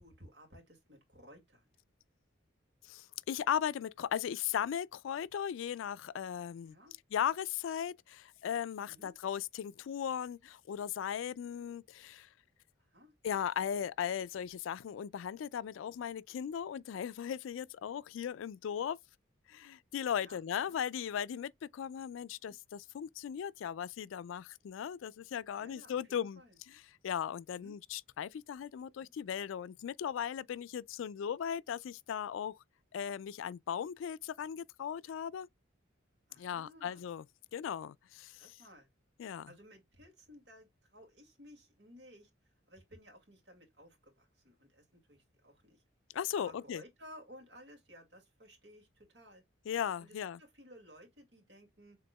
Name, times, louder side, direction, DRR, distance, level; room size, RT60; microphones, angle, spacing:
voice 1, 0.0-1.7 6.6-6.9 8.9-9.2 12.9-13.1 20.1-20.8 22.4-22.6 25.5-26.6 27.6-27.8 29.0-29.1 36.3-37.1 38.4-38.9 39.5-42.3 42.7-45.8 46.3-49.4 50.0-52.0, equal, 60° right, 2.1 m, -57 dB
voice 2, 2.8-6.8 7.1-12.3 13.2-19.0 19.5-32.6 32.9-35.5 36.4-37.2 37.5-38.6 39.2-39.5 46.1-46.8 49.7-50.4, left 8 dB, 80° left, 0.3 m, -37 dB
6.7 x 3.5 x 2.2 m
head